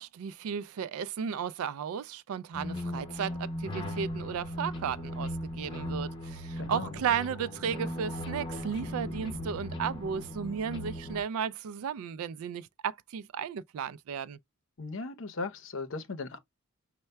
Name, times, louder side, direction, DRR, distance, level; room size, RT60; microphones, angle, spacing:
voice 1, 0.0-14.4, right 7 dB, 80° right, 0.3 m, -34 dB
sound 1, 2.5-11.2, equal, 20° left, 0.9 m, -37 dB
voice 2, 6.6-7.0 14.8-16.4, left 3 dB, 60° left, 0.7 m, -37 dB
5.4 x 2.2 x 3.2 m
head